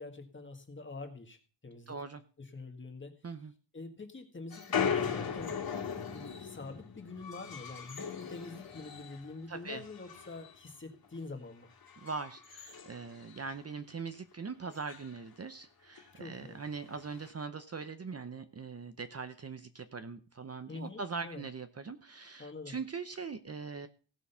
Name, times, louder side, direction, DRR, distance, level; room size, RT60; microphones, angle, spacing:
voice 1, 0.0-1.4 1.6-1.9 2.4-3.1 3.7-5.6 6.1-11.7 16.2-16.6 20.7-21.4 22.4-22.8, left 3 dB, 25° left, 5 dB, 1.7 m, -45 dB
voice 2, 1.9-2.2 3.2-3.5 9.5-9.8 12.0-23.9, right 4 dB, 35° right, 9 dB, 0.7 m, -41 dB
sound 1, 4.5-9.3 9.6-10.6 10.9-11.2 11.7-13.6 14.0-14.1 14.3-14.4 14.7-15.1 16.0-16.1 16.9-17.3, left 7 dB, 50° left, 2.2 m, -38 dB
16.5 x 6.3 x 5.6 m, 0.37 s
wide cardioid pair, 180°, 45 cm